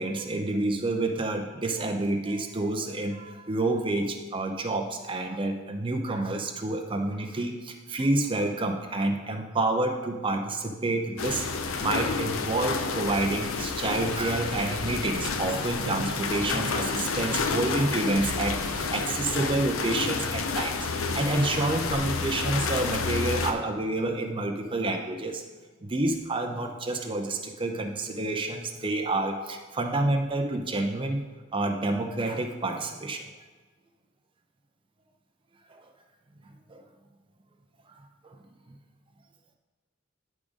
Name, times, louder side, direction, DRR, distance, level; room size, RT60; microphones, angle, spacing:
voice 1, 0.0-11.5 11.8-25.4 25.8-31.2 31.5-33.3 35.8-35.9 36.7-36.8 38.2-38.4, right 2 dB, 25° right, 3 dB, 0.6 m, -28 dB
sound 1, 11.2-23.5, left 4 dB, 90° left, 0.7 m, -30 dB
10.5 x 3.7 x 5.0 m, 1.3 s
head